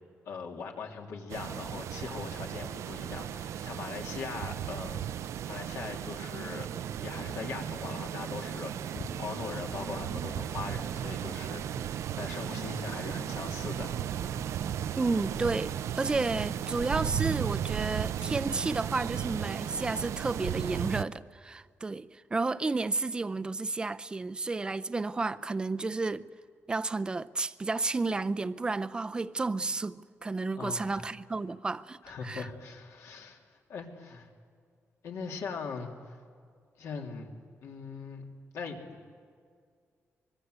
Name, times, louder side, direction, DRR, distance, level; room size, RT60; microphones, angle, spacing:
voice 1, 0.3-5.0 5.4-6.7 7.0-14.0 30.6-31.1 32.0-33.4 33.7-34.3 35.0-36.2 36.8-37.3 37.6-38.2 38.5-39.0, left 5 dB, 80° left, 3.2 m, -40 dB
sound 1, 1.3-21.0, right 10 dB, 90° right, 0.6 m, -36 dB
sound 2, 5.7-20.4, right 6 dB, 50° right, 0.8 m, -44 dB
voice 2, 15.0-26.2 26.7-32.0 32.2-32.5, right 3 dB, 20° right, 0.5 m, -32 dB
24.5 x 23.0 x 8.1 m
wide cardioid pair, 180°, 5 cm